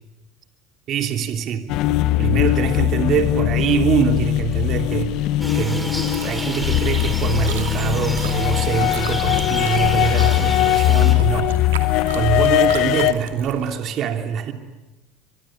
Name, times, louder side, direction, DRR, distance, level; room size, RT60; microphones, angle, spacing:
voice 1, 0.9-1.7 2.2-5.2 5.5-11.5 11.8-14.5, right 8 dB, 50° right, 3.0 m, -24 dB
sound 1, 1.7-13.1, left 15 dB, 60° left, 1.3 m, -20 dB
sound 2, 5.4-11.1, equal, ahead, 5.3 m, -30 dB
Chewing mastication, 5.8-13.7, right 10 dB, 80° right, 2.6 m, -36 dB
24.5 x 23.5 x 9.9 m
hypercardioid pair, 80°, 0 cm